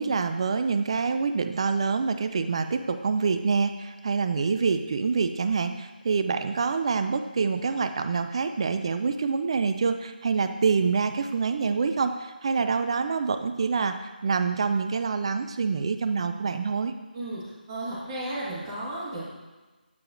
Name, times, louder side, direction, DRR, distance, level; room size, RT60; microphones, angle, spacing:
voice 1, 0.0-16.9, right 5 dB, 35° right, 8 dB, 0.3 m, -26 dB
voice 2, 17.1-19.3, right 1 dB, 20° right, -7 dB, 1.6 m, -34 dB
8.3 x 4.7 x 2.5 m, 1.2 s
figure-of-eight pair, 155°, 5 cm